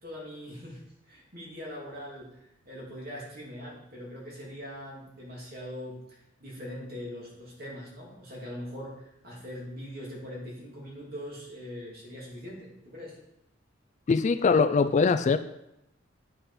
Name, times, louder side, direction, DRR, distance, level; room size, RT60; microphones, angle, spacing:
voice 1, 0.0-0.8 1.1-13.2, equal, 50° right, -4 dB, 2.9 m, -42 dB
voice 2, 14.1-15.4, left 4 dB, 40° left, 11 dB, 0.3 m, -22 dB
8.9 x 5.2 x 4.2 m, 0.83 s
head